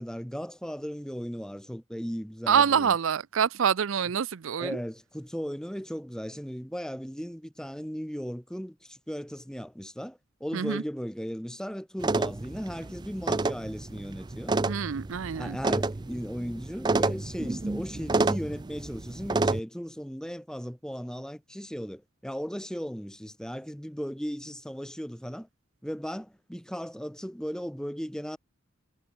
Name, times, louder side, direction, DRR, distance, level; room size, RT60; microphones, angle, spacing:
voice 1, 0.0-3.0 4.6-14.5 15.3-25.5 25.8-28.4, equal, 5° left, 1.6 m, -36 dB
voice 2, 2.5-4.8 10.5-10.8 14.7-15.6, right 7 dB, 75° right, 0.5 m, -26 dB
sound 1, 12.0-19.6, right 3 dB, 20° right, 0.4 m, -29 dB
head